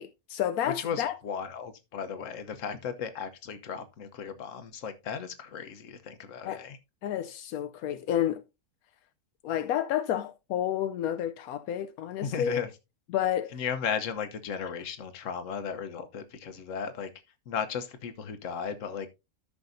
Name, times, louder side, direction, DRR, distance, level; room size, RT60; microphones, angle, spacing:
voice 1, 0.0-1.2 6.4-6.6 7.0-8.4 9.4-12.6 13.1-13.6, left 10 dB, 85° left, 1.1 m, -30 dB
voice 2, 0.7-6.8 12.2-12.7 13.5-17.1 17.5-19.1, left 7 dB, 65° left, 1.3 m, -35 dB
13.5 x 6.0 x 2.6 m
omnidirectional pair, 1.5 m